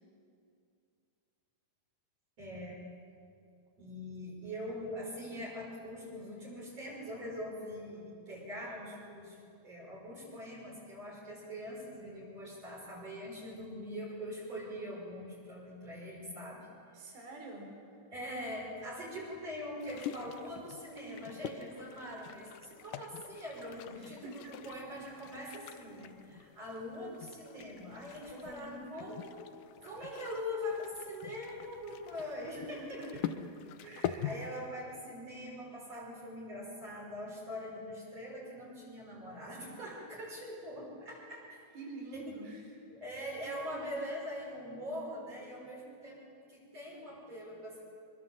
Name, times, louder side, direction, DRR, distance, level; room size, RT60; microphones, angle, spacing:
voice 1, 2.4-2.8 3.8-16.7 17.0-17.2 18.1-29.3 29.8-33.2 33.8-41.6 42.1-42.4 42.9-47.8, left 1 dB, 35° right, -5 dB, 6.9 m, -43 dB
voice 2, 17.0-17.7 24.0-24.5 25.3-25.6 28.3-29.1 32.6-33.5 33.8-34.3 41.7-42.6, right 2 dB, 65° right, 1 dB, 6.1 m, -47 dB
sound 1, 19.8-34.4, left 10 dB, 80° left, 1.9 m, -45 dB
25.0 x 23.0 x 7.5 m, 2.4 s
omnidirectional pair, 4.8 m